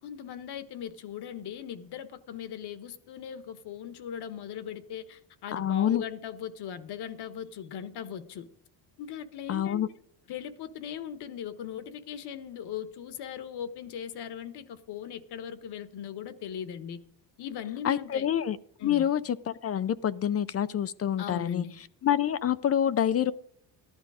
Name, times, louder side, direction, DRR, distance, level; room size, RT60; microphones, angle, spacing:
voice 1, 0.0-8.5 9.0-9.8 10.3-17.0 17.4-18.3 18.8-19.1 21.2-21.8, left 8 dB, 65° left, 12 dB, 1.4 m, -39 dB
voice 2, 5.5-6.0 9.5-9.9 17.8-21.6 22.0-23.3, left 10 dB, 35° left, 16 dB, 0.5 m, -27 dB
14.0 x 11.5 x 4.9 m, 0.66 s
cardioid pair, 135°, 43 cm